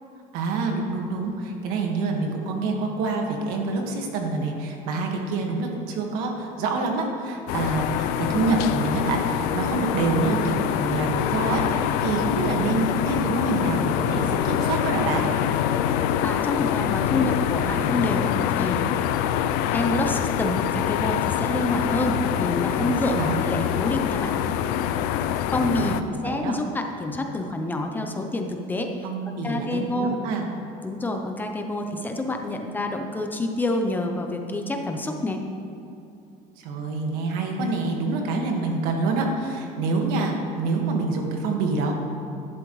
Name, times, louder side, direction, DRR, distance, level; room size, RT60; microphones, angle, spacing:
voice 1, 0.3-15.3 22.8-23.4 25.5-26.6 29.0-30.4 36.6-41.9, right 3 dB, 75° right, 2 dB, 1.7 m, -26 dB
sound 1, 7.5-26.0, left 10 dB, 80° left, 0.5 m, -25 dB
voice 2, 16.2-18.8 19.7-24.4 25.5-28.9 29.4-30.2 30.8-35.4, left 2 dB, 10° left, 3 dB, 0.6 m, -27 dB
11.5 x 11.5 x 3.2 m, 2.7 s
cardioid pair, 170°, 15 cm